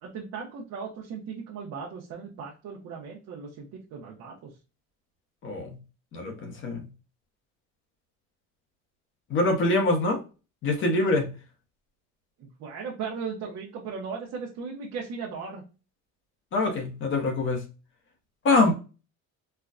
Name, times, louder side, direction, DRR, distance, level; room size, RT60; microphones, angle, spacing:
voice 1, 0.0-4.5 12.4-15.6, right 5 dB, 55° right, 0.9 m, -37 dB
voice 2, 6.1-6.9 9.3-10.2 10.6-11.3 16.5-17.6 18.4-18.7, left 2 dB, 40° left, 0.9 m, -24 dB
4.5 x 2.3 x 2.4 m
cardioid pair, 170°, 30 cm